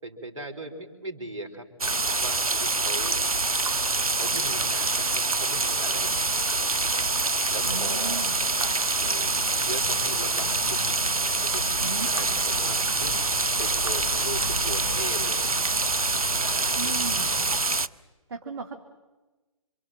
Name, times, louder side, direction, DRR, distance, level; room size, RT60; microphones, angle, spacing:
voice 1, 0.0-3.2 4.1-6.9 7.5-8.3 8.6-10.9 11.4-11.6 12.0-13.2 13.6-15.5 16.3-17.8, right 1 dB, 60° right, 7 dB, 3.9 m, -40 dB
sound 1, 1.8-17.9, right 3 dB, 80° right, 0.9 m, -25 dB
sound 2, 6.9-17.6, equal, 70° left, 5.1 m, -42 dB
voice 2, 7.6-8.3 11.8-12.1 16.8-17.4 18.3-18.8, right 4 dB, 45° right, 5 dB, 2.2 m, -35 dB
Chirp tweet, 11.4-17.6, left 1 dB, 35° left, 3.8 m, -45 dB
27.5 x 26.0 x 7.6 m, 1.2 s
figure-of-eight pair, 135°, 18 cm